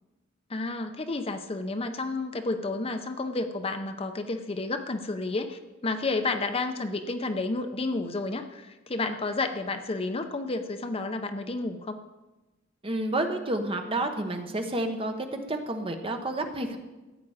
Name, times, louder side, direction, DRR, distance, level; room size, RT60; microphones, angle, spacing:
voice 1, 0.5-12.0, left 3 dB, 30° left, 7 dB, 0.6 m, -31 dB
voice 2, 12.8-16.8, right 1 dB, 30° right, 5 dB, 1.1 m, -30 dB
14.0 x 8.4 x 4.9 m, 1.1 s
head